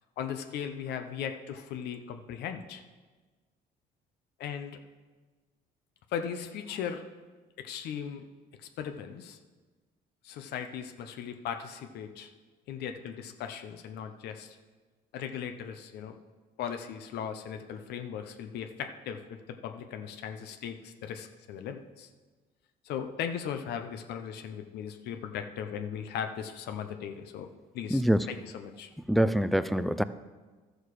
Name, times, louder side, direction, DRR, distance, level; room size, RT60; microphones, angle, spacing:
voice 1, 0.2-2.8 4.4-4.8 6.1-7.0 7.6-8.2 8.8-9.4 10.2-12.3 12.7-14.6 15.1-16.1 16.6-22.1 22.8-27.5 27.7-28.0 28.3-28.9, left 8 dB, 75° left, 6 dB, 0.8 m, -38 dB
voice 2, 27.9-28.3 29.1-30.0, equal, ahead, 13 dB, 0.4 m, -25 dB
12.5 x 6.4 x 4.9 m, 1.3 s
cardioid pair, 110°, 17 cm